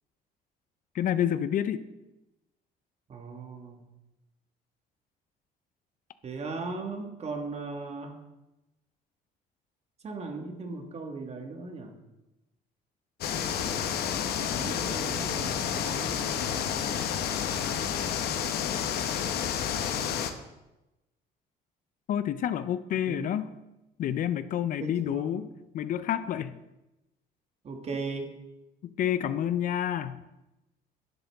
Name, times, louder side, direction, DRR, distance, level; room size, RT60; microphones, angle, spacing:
voice 1, 0.9-1.8 22.1-23.5 24.0-25.5 25.7-26.5 28.8-30.2, left 10 dB, 55° left, 14 dB, 0.5 m, -29 dB
voice 2, 3.1-3.9 6.2-8.1 10.0-11.9 14.4-16.2 23.1-23.4 24.8-25.4 27.6-28.3, right 3 dB, 40° right, 4 dB, 1.5 m, -38 dB
sound 1, 13.2-20.3, left 8 dB, 70° left, 0.9 m, -30 dB
10.5 x 7.9 x 3.5 m, 0.98 s
cardioid pair, 110°, 17 cm